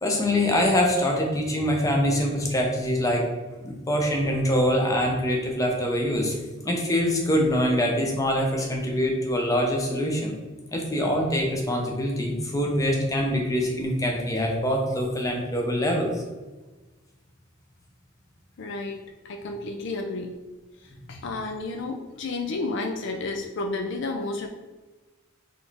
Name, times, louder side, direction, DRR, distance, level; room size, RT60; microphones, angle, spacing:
voice 1, 0.0-3.2 3.6-6.3 6.6-10.3 10.7-16.1, equal, 15° left, 1 dB, 0.7 m, -24 dB
voice 2, 18.6-20.4 21.1-24.5, left 3 dB, 60° left, 3 dB, 0.4 m, -31 dB
4.2 x 3.2 x 3.4 m, 1.2 s
head